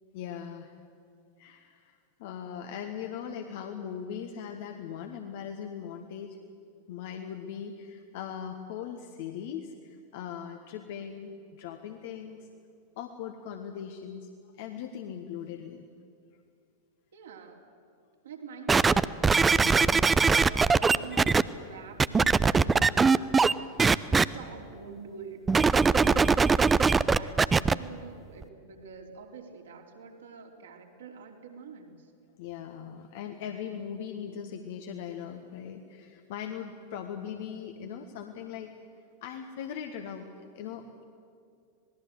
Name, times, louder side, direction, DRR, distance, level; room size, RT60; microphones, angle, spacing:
voice 1, 0.1-0.7 1.4-6.4 6.9-12.5 13.0-15.9 19.5-19.9 26.0-26.3 27.2-27.4 32.4-38.7 39.2-40.3 40.5-41.0, left 8 dB, 50° left, 5 dB, 1.4 m, -40 dB
voice 2, 17.1-17.7 18.2-23.7 24.1-25.5 26.0-26.4 27.1-32.1, right 5 dB, 65° right, 1 dB, 3.4 m, -46 dB
sound 1, 18.7-21.4 22.0-23.5 23.8-24.2 25.5-27.7 28.4-28.5, right 4 dB, 15° right, 0.6 m, -21 dB
27.0 x 20.0 x 7.9 m, 2.3 s
figure-of-eight pair, 90°, 0 cm